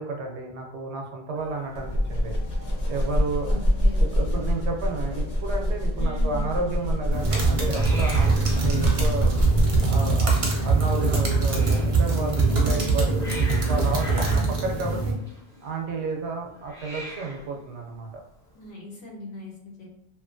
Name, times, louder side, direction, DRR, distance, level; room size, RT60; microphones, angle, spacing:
voice 1, 0.0-2.3 2.9-3.6 4.0-9.3 9.8-15.2 15.6-18.2, right 3 dB, 80° right, 2 dB, 0.9 m, -32 dB
Hiss, 1.3-18.7, equal, 5° left, 0.7 m, -45 dB
sound 1, 1.8-10.0, equal, 50° left, 0.8 m, -26 dB
voice 2, 3.4-4.4 6.0-6.4 12.5-12.9 14.2-14.6 18.5-19.9, left 1 dB, 75° left, -3 dB, 1.1 m, -40 dB
sound 2, 7.1-15.1, right 3 dB, 40° right, 0.5 m, -22 dB
2.8 x 2.4 x 2.5 m, 0.76 s
omnidirectional pair, 1.1 m